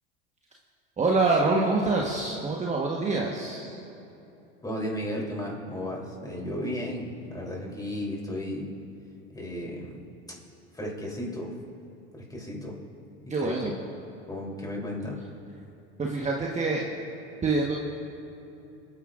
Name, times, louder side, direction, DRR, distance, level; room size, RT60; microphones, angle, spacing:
voice 1, 1.0-3.8 13.3-13.7 16.0-16.9 17.4-17.8, right 3 dB, 20° right, -2 dB, 1.3 m, -26 dB
voice 2, 4.6-8.7 9.3-10.0 10.7-11.5 12.1-12.8 13.2-13.6 14.3-15.2, left 1 dB, 10° left, -2 dB, 3.4 m, -34 dB
29.0 x 9.7 x 2.5 m, 2.9 s
hypercardioid pair, 90°, 33 cm